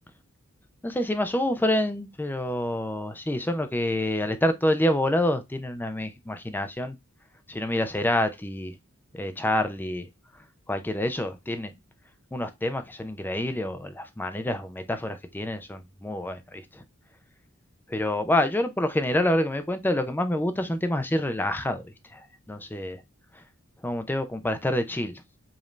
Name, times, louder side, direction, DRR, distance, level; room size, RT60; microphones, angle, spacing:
voice 1, 0.8-7.0 7.5-8.8 9.1-10.1 10.7-11.7 12.3-16.8 17.9-23.0 23.3-23.4 23.8-25.2, left 1 dB, 10° left, 0.4 m, -27 dB
5.1 x 2.6 x 3.1 m
head